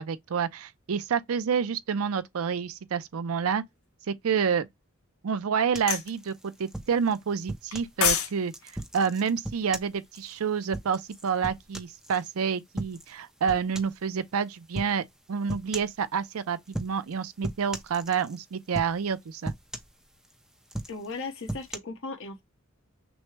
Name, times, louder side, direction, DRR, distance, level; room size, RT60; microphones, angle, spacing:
voice 1, 0.0-3.6 4.1-4.7 5.2-8.5 8.9-15.0 15.3-19.5, right 6 dB, 80° right, 0.5 m, -28 dB
sound 1, 5.7-8.0 8.5-12.3 12.8-13.2 13.5-14.0 14.7-15.0 15.5-16.0 16.7-17.1 17.4-18.4 18.7-19.1 19.4-20.3 20.7-21.8, right 1 dB, 5° right, 0.6 m, -38 dB
sound 2, 5.9-6.1 7.7-8.3 8.6-8.8, left 8 dB, 90° left, 1.3 m, -25 dB
voice 2, 20.9-22.4, left 3 dB, 65° left, 1.0 m, -37 dB
6.1 x 2.1 x 3.2 m
head